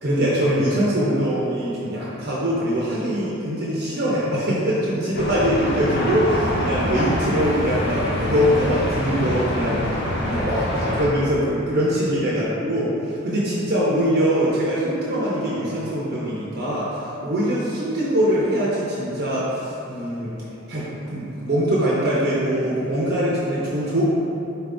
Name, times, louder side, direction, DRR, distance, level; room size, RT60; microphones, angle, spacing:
voice 1, 0.0-20.3 20.7-24.0, equal, 50° right, -7 dB, 0.5 m, -23 dB
sound 1, 5.1-11.1, left 1 dB, 50° left, 0.4 m, -25 dB
4.0 x 2.6 x 3.4 m, 2.9 s
head